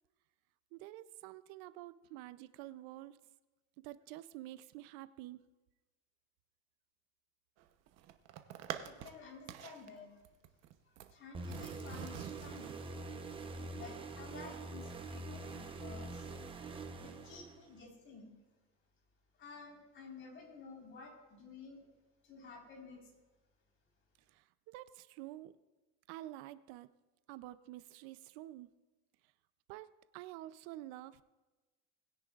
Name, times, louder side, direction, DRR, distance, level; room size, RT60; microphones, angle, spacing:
voice 1, 0.7-3.2 3.8-5.4 24.3-25.5 26.1-26.9 27.3-28.7 29.7-31.2, right 15 dB, 75° right, 14 dB, 0.6 m, -49 dB
sound 1, 7.6-9.2 9.5-9.9 10.3-11.1 11.4-12.8, right 11 dB, 50° right, 0.9 m, -46 dB
voice 2, 8.7-10.2 10.8-12.8 13.7-16.3 17.0-18.3 19.4-21.9 22.2-23.1, left 4 dB, 40° left, -1 dB, 4.2 m, -53 dB
sound 2, 11.3-17.8, right 2 dB, 15° right, 0.8 m, -45 dB
20.5 x 10.0 x 2.4 m, 1.2 s
cardioid pair, 140°, 33 cm